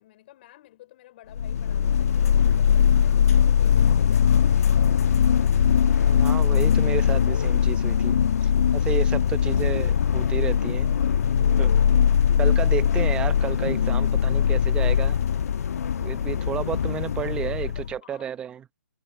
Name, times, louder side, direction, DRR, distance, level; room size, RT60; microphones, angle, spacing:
voice 1, 0.0-4.8 17.1-18.4, left 15 dB, 35° left, 5.5 m, -52 dB
sound 1, 1.3-17.9, left 8 dB, 60° left, 1.2 m, -21 dB
voice 2, 6.0-10.9 11.6-11.7 12.4-15.2 16.0-18.6, right 9 dB, 10° right, 0.7 m, -32 dB
hypercardioid pair, 150°, 9 cm